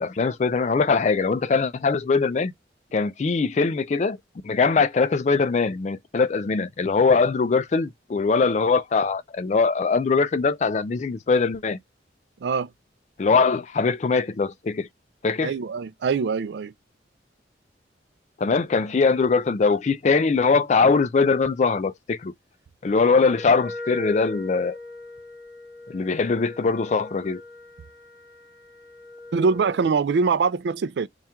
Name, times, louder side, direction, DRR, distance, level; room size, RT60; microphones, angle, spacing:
voice 1, 0.0-2.5 2.9-4.2 4.4-11.8 13.2-14.9 15.2-15.5 18.4-22.3 22.8-24.8 25.9-27.4, left 4 dB, 40° left, 0.3 m, -22 dB
voice 2, 12.4-12.7 15.4-16.7 29.3-31.1, right 5 dB, 65° right, 0.3 m, -23 dB
Wind instrument woodwind instrument, 23.2-29.9, left 2 dB, 20° right, 1.0 m, -39 dB
4.3 x 2.4 x 3.4 m
head